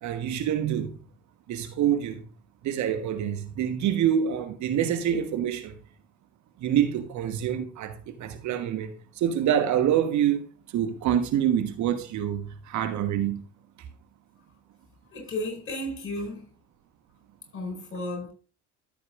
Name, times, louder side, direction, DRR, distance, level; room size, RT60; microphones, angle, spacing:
voice 1, 0.0-1.0 1.5-2.2 2.6-5.8 6.6-13.4, right 9 dB, 50° right, 1.2 m, -26 dB
voice 2, 15.1-16.5 17.5-18.3, left 1 dB, 35° left, 4.6 m, -33 dB
13.5 x 7.3 x 2.5 m
figure-of-eight pair, 55°, 37 cm